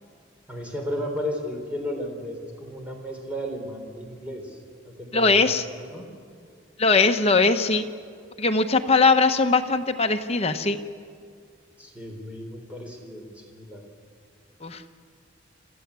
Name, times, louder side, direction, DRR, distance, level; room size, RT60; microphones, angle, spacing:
voice 1, 0.5-4.6 4.8-6.1 11.8-13.8, equal, 5° right, 1 dB, 3.9 m, -34 dB
voice 2, 5.1-5.6 6.8-7.8 8.4-10.8 14.6-14.8, left 4 dB, 30° left, 5 dB, 1.1 m, -20 dB
26.5 x 14.5 x 8.4 m, 2.2 s
head